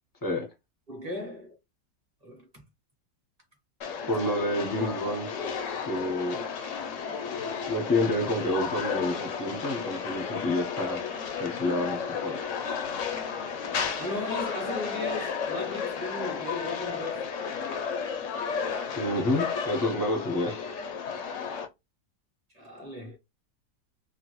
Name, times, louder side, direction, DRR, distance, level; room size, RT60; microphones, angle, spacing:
voice 1, 0.9-1.6 2.2-2.6 4.1-4.2 14.0-17.4 18.8-18.9 22.5-23.2, left 1 dB, 30° right, 0.8 m, -37 dB
sound 1, 3.8-21.7, left 6 dB, 70° left, 0.7 m, -33 dB
voice 2, 4.1-5.3 5.9-6.4 7.7-11.0 11.4-12.5 19.0-20.7, left 1 dB, 20° left, 0.5 m, -29 dB
2.9 x 2.5 x 3.0 m
omnidirectional pair, 1.9 m